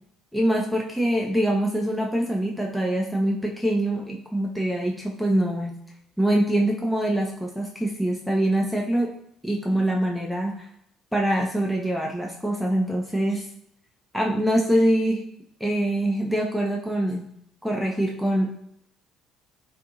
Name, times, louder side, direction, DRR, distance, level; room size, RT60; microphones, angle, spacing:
voice 1, 0.3-5.8 6.2-9.1 9.4-10.7 11.1-13.5 14.1-15.3 15.6-17.2 17.6-18.5, right 1 dB, ahead, -1 dB, 0.5 m, -24 dB
2.5 x 2.5 x 2.6 m, 0.73 s
figure-of-eight pair, 55°, 0 cm